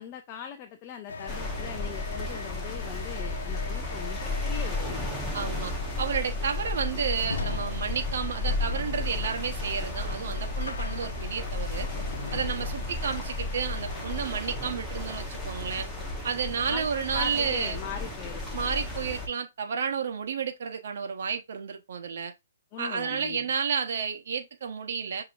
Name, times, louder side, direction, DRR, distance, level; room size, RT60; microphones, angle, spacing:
voice 1, 0.0-5.0 16.7-18.4 22.7-23.5, left 9 dB, 30° left, 0.5 m, -40 dB
sound 1, 1.1-14.2, left 3 dB, 75° left, 0.9 m, -40 dB
sound 2, 1.3-19.3, left 2 dB, 5° left, 1.1 m, -33 dB
voice 2, 5.3-11.9 12.3-15.9 16.2-17.8 18.5-22.3 22.8-25.2, right 6 dB, 60° right, 1.0 m, -31 dB
6.8 x 2.9 x 2.5 m
hypercardioid pair, 155°, 0 cm